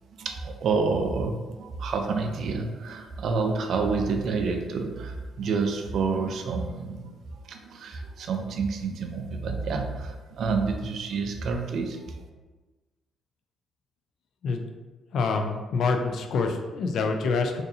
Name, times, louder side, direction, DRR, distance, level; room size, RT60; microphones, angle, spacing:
voice 1, 0.1-7.1 7.4-12.2, right 4 dB, 65° right, 5 dB, 0.4 m, -28 dB
voice 2, 15.1-17.6, left 4 dB, 70° left, 5 dB, 0.4 m, -26 dB
3.9 x 2.6 x 2.7 m, 1.3 s
cardioid pair, 90°, 0 cm